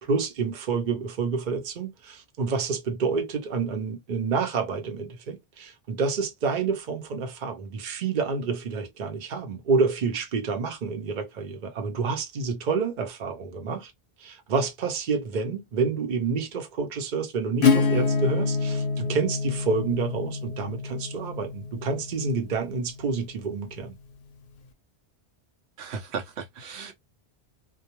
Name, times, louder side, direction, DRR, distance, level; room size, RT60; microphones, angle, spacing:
voice 1, 0.0-13.9 14.2-23.9, right 4 dB, 50° right, 0.8 m, -28 dB
Acoustic guitar / Strum, 17.6-23.1, left 5 dB, 60° left, 0.7 m, -26 dB
voice 2, 25.8-26.9, right 5 dB, 75° right, 0.9 m, -35 dB
2.3 x 2.3 x 2.8 m
omnidirectional pair, 1.1 m